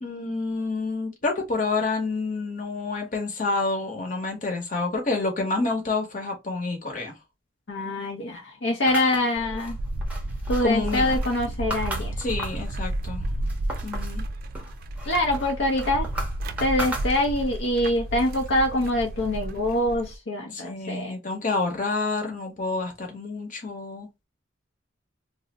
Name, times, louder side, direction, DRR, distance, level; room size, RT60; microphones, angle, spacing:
voice 1, 0.0-7.1 10.6-11.1 12.2-13.2 13.8-14.2 20.5-24.1, left 3 dB, 40° left, 1.0 m, -28 dB
voice 2, 7.7-9.8 10.5-12.1 15.1-16.1 16.6-21.1, left 1 dB, 65° left, 0.7 m, -25 dB
sound 1, 8.9-12.7 13.1-14.2 14.5-17.6, right 1 dB, 5° right, 0.6 m, -37 dB
sound 2, 9.4-20.2, right 1 dB, 50° right, 0.4 m, -32 dB
2.6 x 2.0 x 3.9 m
head